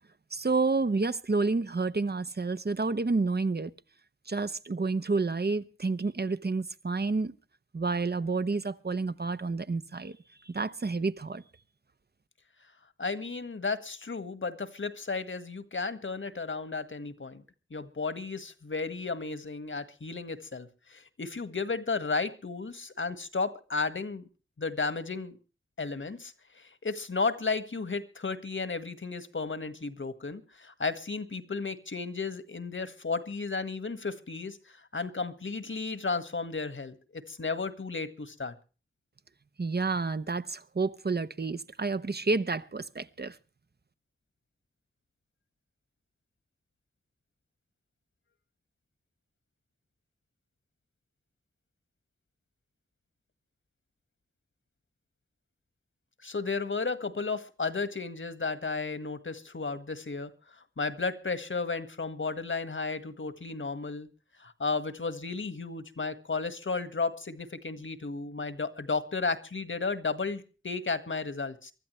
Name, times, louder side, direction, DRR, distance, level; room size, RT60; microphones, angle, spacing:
voice 1, 0.3-3.7 4.3-7.3 7.7-10.2 10.4-11.4 39.6-43.4, right 3 dB, 50° right, 1.0 m, -29 dB
voice 2, 13.0-17.4 17.7-24.2 24.6-25.4 25.8-38.5 56.2-60.3 60.8-64.1 64.4-71.7, left 4 dB, 65° left, 1.7 m, -33 dB
24.0 x 13.0 x 3.2 m
wide cardioid pair, 45°, 21 cm